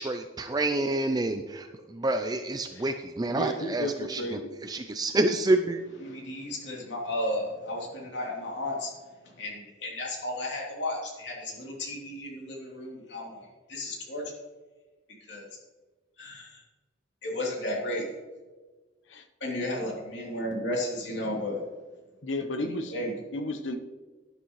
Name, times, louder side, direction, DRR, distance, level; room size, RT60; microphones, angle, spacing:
voice 1, 0.0-5.8, right 2 dB, 20° right, 7 dB, 0.5 m, -28 dB
voice 2, 3.3-4.5 19.1-19.2 22.2-22.9 23.3-23.8, left 1 dB, 80° left, 7 dB, 1.0 m, -33 dB
voice 3, 6.0-8.9 9.4-14.2 15.3-15.5 16.2-16.6 17.2-18.0 19.4-21.6 22.9-23.1, left 1 dB, 65° left, -3 dB, 3.3 m, -33 dB
12.0 x 11.0 x 3.2 m, 1.3 s
head